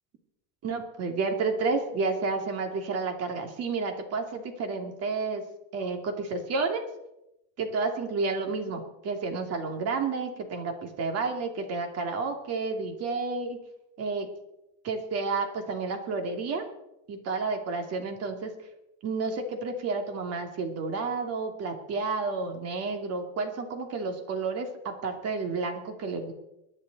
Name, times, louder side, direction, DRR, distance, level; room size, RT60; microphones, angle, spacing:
voice 1, 0.6-5.4 5.7-6.8 7.6-13.6 14.0-14.3 14.8-16.6 17.1-18.5 19.0-26.3, right 4 dB, 45° right, 4 dB, 2.7 m, -31 dB
23.0 x 11.0 x 4.1 m, 0.89 s
cardioid pair, 140°, 35 cm